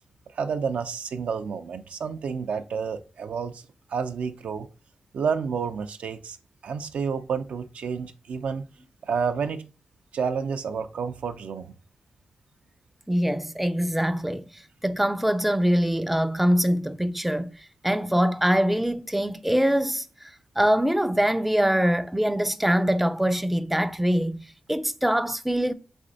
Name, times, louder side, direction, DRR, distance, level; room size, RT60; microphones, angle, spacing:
voice 1, 0.3-3.6 3.9-4.7 5.1-6.4 6.6-8.7 9.0-9.6 10.1-11.7, right 6 dB, 80° right, 0.4 m, -30 dB
voice 2, 13.1-17.6 17.8-25.7, equal, 5° right, 0.3 m, -24 dB
4.2 x 3.4 x 3.8 m
cardioid pair, 80°, 2 cm